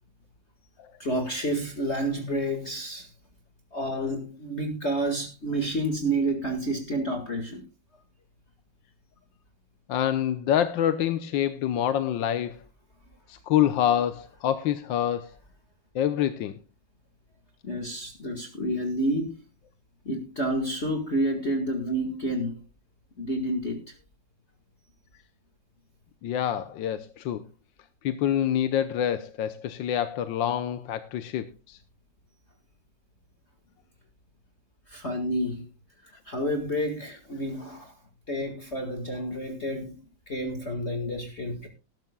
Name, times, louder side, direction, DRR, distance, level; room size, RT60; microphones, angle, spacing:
voice 1, 1.0-3.1 3.7-7.6 17.6-19.4 20.1-22.6 23.2-23.8 34.9-35.7 36.3-37.9 38.3-40.0 40.3-41.7, right 1 dB, 35° left, 2.0 m, -29 dB
voice 2, 9.9-12.6 13.3-15.3 15.9-16.6 26.2-27.4 28.0-31.8, left 10 dB, 80° left, 1.5 m, -26 dB
19.5 x 12.0 x 2.3 m
omnidirectional pair, 2.1 m